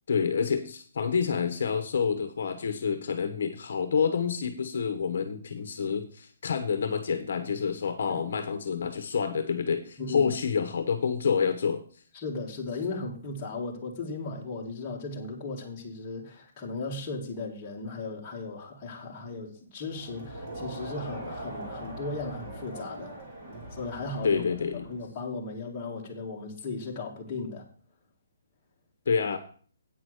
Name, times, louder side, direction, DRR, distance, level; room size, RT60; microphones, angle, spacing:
voice 1, 0.1-11.8 24.2-24.8 29.1-29.4, left 6 dB, 50° left, 9 dB, 1.0 m, -28 dB
voice 2, 10.0-10.3 12.1-23.2 23.7-24.4 24.7-27.7, left 3 dB, 15° left, -4 dB, 1.7 m, -36 dB
Crowd, 19.9-25.1, right 1 dB, 25° right, 2.5 m, -41 dB
8.8 x 6.0 x 6.4 m, 0.43 s
hypercardioid pair, 180°, 0 cm